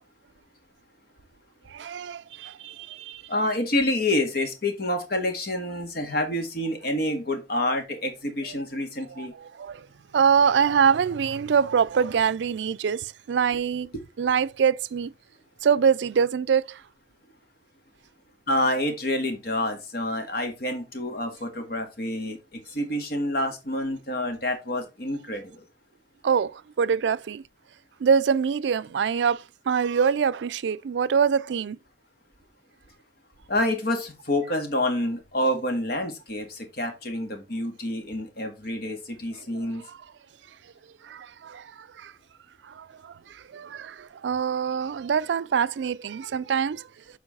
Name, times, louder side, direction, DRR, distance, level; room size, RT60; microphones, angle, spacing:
voice 1, 1.7-3.2 9.2-9.3 9.6-9.9 10.1-13.9 14.2-15.1 15.6-16.8 26.2-27.4 28.0-31.8 41.0-42.1 42.7-46.9, right 7 dB, 85° right, 0.4 m, -24 dB
voice 2, 3.3-9.3 18.5-25.6 33.5-39.8, left 1 dB, 60° left, 1.8 m, -28 dB
7.1 x 4.7 x 4.0 m
head